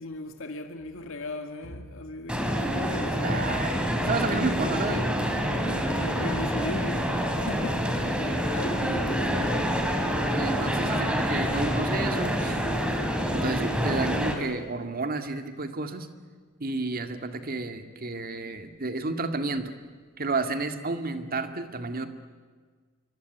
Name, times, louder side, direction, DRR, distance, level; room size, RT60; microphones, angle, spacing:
voice 1, 0.0-4.6 5.8-9.8, left 2 dB, 65° left, 2.2 m, -38 dB
sound 1, 2.3-14.4, equal, 5° right, 3.3 m, -27 dB
voice 2, 3.2-5.1 10.4-12.6 13.3-16.1 16.6-19.7 20.2-22.1, right 3 dB, 45° right, 2.1 m, -31 dB
26.0 x 23.5 x 9.4 m
head